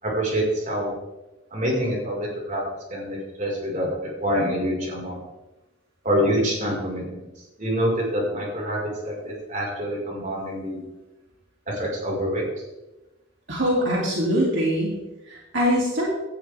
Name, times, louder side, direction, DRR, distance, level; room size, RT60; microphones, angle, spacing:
voice 1, 0.0-0.9 1.5-2.6 2.9-5.2 6.0-7.3 7.6-10.8 11.7-12.4, equal, 40° right, -2 dB, 5.4 m, -26 dB
voice 2, 13.5-16.1, equal, 65° right, -4 dB, 3.2 m, -23 dB
17.0 x 13.0 x 3.7 m, 1.0 s
head